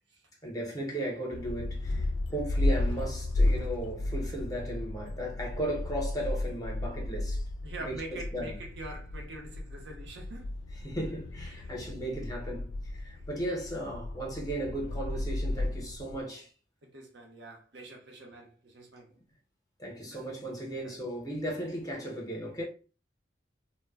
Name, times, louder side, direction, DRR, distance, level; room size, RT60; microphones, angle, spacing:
voice 1, 0.4-7.4 7.8-8.6 10.8-16.5 19.8-22.6, right 1 dB, 20° left, 0.7 m, -36 dB
sound 1, 1.3-16.2, left 2 dB, 80° left, 0.3 m, -33 dB
voice 2, 7.6-10.5 11.6-11.7 13.1-13.3 16.8-19.1 20.1-20.2 20.8-20.9, right 2 dB, 65° right, 0.7 m, -45 dB
2.1 x 2.1 x 3.4 m
head